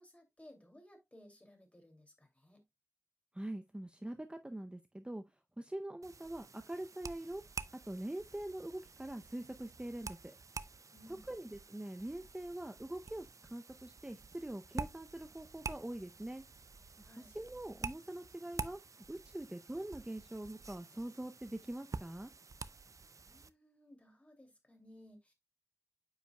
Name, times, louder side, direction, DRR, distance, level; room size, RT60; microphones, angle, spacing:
voice 1, 0.0-2.6 10.9-11.3 17.0-17.3 23.1-25.3, left 1 dB, 25° left, 2.6 m, -59 dB
voice 2, 3.3-5.2 5.6-7.4 7.9-10.3 11.3-16.4 17.2-18.8 19.1-22.3, right 1 dB, 15° right, 0.6 m, -43 dB
sound 1, 6.0-23.5, right 4 dB, 70° right, 0.4 m, -48 dB
8.9 x 5.5 x 2.2 m
wide cardioid pair, 65°, 6 cm